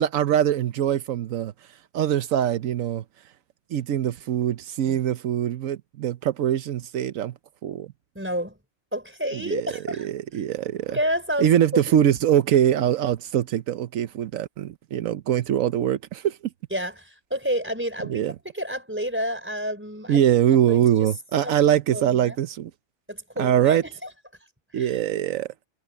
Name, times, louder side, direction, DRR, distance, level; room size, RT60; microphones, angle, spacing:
voice 1, 0.0-1.5 1.9-3.0 3.7-7.3 7.6-7.9 9.3-11.0 11.4-16.4 18.1-18.3 20.1-22.7 23.4-23.8 24.7-25.5, right 10 dB, 85° right, 1.2 m, -23 dB
voice 2, 8.1-8.6 8.9-10.1 10.9-11.5 11.8-11.9 16.7-20.2 20.7-21.1 21.4-22.4 23.1-24.1 24.7-24.9, equal, 10° right, 4.5 m, -30 dB
omnidirectional pair, 1.4 m